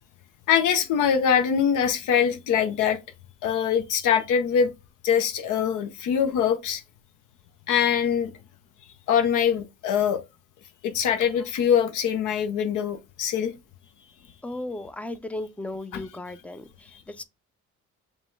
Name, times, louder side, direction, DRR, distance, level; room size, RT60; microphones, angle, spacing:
voice 1, 0.5-3.0 3.4-4.7 5.0-6.8 7.7-8.3 9.1-10.2 10.8-13.5, left 8 dB, 85° left, 0.7 m, -23 dB
voice 2, 14.4-17.2, left 2 dB, 5° left, 0.4 m, -36 dB
5.2 x 2.2 x 3.1 m
cardioid pair, 90°, 30 cm